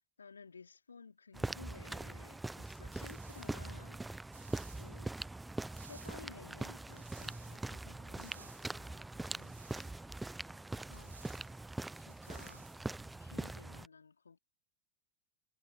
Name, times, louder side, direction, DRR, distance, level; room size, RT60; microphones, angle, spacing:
voice 1, 0.2-4.1 4.7-5.1 5.8-9.6 10.9-11.2 12.0-12.7 13.2-14.4, left 5 dB, 75° left, 4.3 m, -56 dB
sound 1, 1.3-13.9, right 2 dB, 5° right, 0.9 m, -43 dB
sound 2, 2.9-13.6, right 5 dB, 75° right, 1.2 m, -62 dB
figure-of-eight pair, 90°, 0 cm